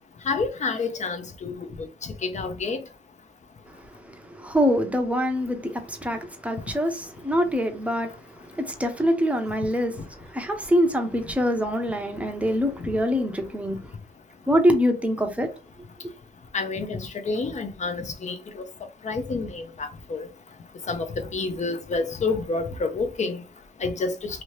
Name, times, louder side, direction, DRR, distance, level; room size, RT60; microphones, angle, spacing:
voice 1, 0.3-1.6 2.2-2.8 16.5-17.0 17.3-18.3 19.0-19.6 20.1-20.3 20.9-21.0 21.3-23.4 23.8-24.1, left 4 dB, 35° left, 0.7 m, -28 dB
voice 2, 4.4-8.1 8.7-9.9 10.3-13.8 14.5-15.5, equal, 5° right, 0.7 m, -24 dB
2.9 x 2.7 x 3.2 m
cardioid pair, 115°, 20 cm